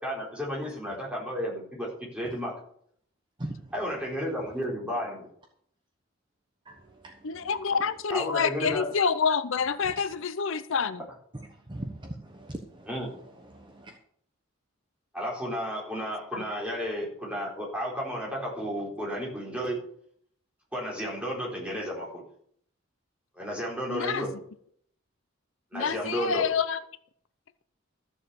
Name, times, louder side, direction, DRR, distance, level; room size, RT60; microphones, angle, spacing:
voice 1, 0.0-2.6 3.7-5.3 8.1-8.8 12.9-13.1 15.1-19.9 20.7-22.2 23.4-24.3 25.7-26.4, equal, 5° right, 4.2 m, -33 dB
voice 2, 0.6-1.0 2.2-2.4 3.4-3.7 6.6-7.7 8.7-8.8 9.8-10.3 11.3-14.0, right 1 dB, 20° right, 1.1 m, -42 dB
voice 3, 7.2-11.0 16.3-16.4 23.9-24.3 25.7-26.8, left 6 dB, 65° left, 0.6 m, -27 dB
13.5 x 7.0 x 6.9 m
head